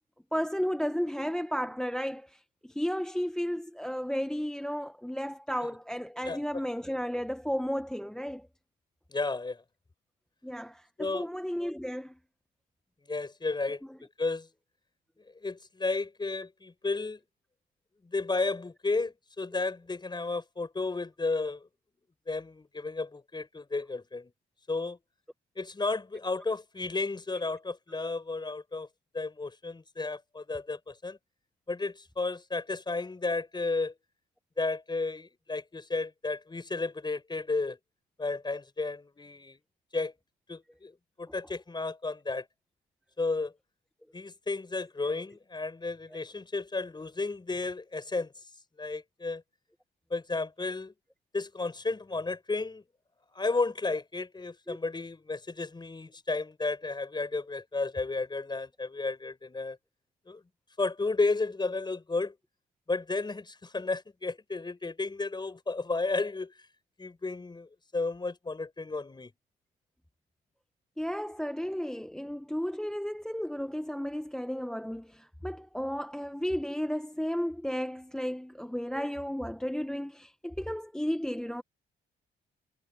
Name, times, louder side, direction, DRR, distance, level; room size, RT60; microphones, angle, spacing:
voice 1, 0.3-8.5 10.4-12.2 13.7-14.0 54.7-54.8 71.0-81.6, equal, 5° left, 0.8 m, -33 dB
voice 2, 9.1-9.6 11.0-11.3 13.1-13.8 14.2-14.5 15.4-17.2 18.0-21.7 22.3-24.3 24.7-25.0 25.6-28.9 29.1-31.2 31.7-33.9 34.6-37.8 38.2-39.6 39.9-40.1 40.5-40.9 41.2-42.4 43.2-43.5 44.1-48.3 48.8-49.4 50.1-50.9 51.3-52.8 53.3-59.8 60.3-60.4 60.8-62.3 62.9-66.5 67.0-69.3, left 3 dB, 20° left, 4.7 m, -33 dB
cardioid pair, 90°, 20 cm